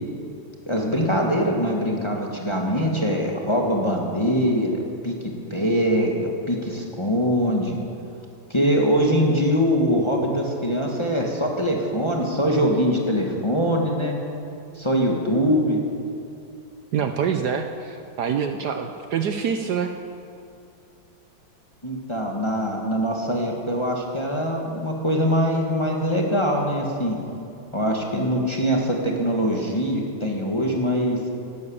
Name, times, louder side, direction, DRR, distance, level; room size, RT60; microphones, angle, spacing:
voice 1, 0.7-5.2 5.5-6.1 6.5-7.8 8.5-14.2 14.7-15.8 21.8-27.2 27.7-31.2, equal, 15° left, 0 dB, 1.4 m, -23 dB
voice 2, 16.9-19.9, right 7 dB, 65° right, 6 dB, 1.2 m, -25 dB
12.0 x 12.0 x 8.5 m, 2.6 s
omnidirectional pair, 2.2 m